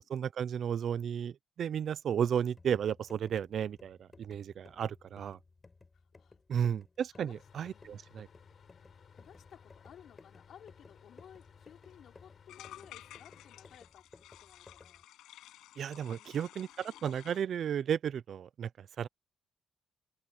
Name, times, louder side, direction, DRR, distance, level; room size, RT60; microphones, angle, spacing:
voice 1, 0.1-1.3 1.6-5.4 6.5-8.3 15.8-18.7 19.0-19.1, right 8 dB, 60° right, 0.6 m, -33 dB
sound 1, 2.4-15.0, left 3 dB, 25° left, 6.2 m, -59 dB
voice 2, 5.9-6.7 7.1-8.1 9.1-15.5 15.9-16.7, left 9 dB, 65° left, 3.8 m, -58 dB
sound 2, 7.3-13.8, left 7 dB, 50° left, 6.6 m, -60 dB
sound 3, 11.1-11.2 11.4-11.5 11.8-12.0 12.5-17.4, left 14 dB, 85° left, 6.7 m, -53 dB
open air
cardioid pair, 90°, 0 cm